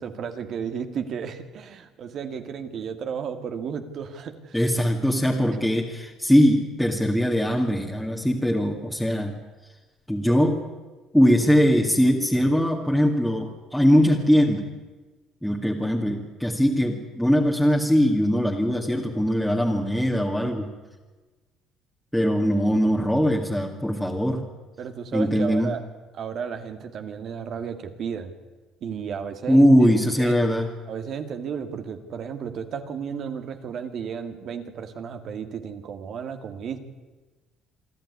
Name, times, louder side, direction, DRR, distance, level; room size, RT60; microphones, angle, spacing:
voice 1, 0.0-4.6 10.3-10.4 24.8-25.8 26.1-28.3 28.8-29.7 30.2-30.4 30.9-36.8, right 7 dB, 55° right, 7 dB, 2.2 m, -33 dB
voice 2, 4.5-9.4 10.1-10.6 11.1-14.7 15.4-20.7 22.1-24.4 25.1-25.7 29.5-30.7, equal, ahead, -1 dB, 2.2 m, -21 dB
27.0 x 11.5 x 9.8 m, 1.3 s
cardioid pair, 100°, 0 cm